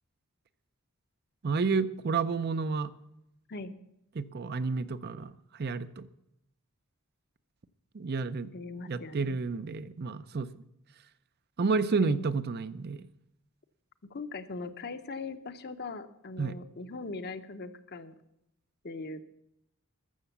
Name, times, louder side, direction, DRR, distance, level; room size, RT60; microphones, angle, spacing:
voice 1, 1.4-2.9 4.2-5.3 5.6-6.1 7.9-8.5 8.9-10.5 11.6-13.1 16.4-16.6, right 4 dB, 45° right, 13 dB, 0.5 m, -30 dB
voice 2, 8.5-9.4 12.0-12.3 14.0-18.2 18.8-19.2, left 3 dB, 45° left, 10 dB, 0.8 m, -40 dB
13.5 x 6.9 x 7.1 m, 0.82 s
head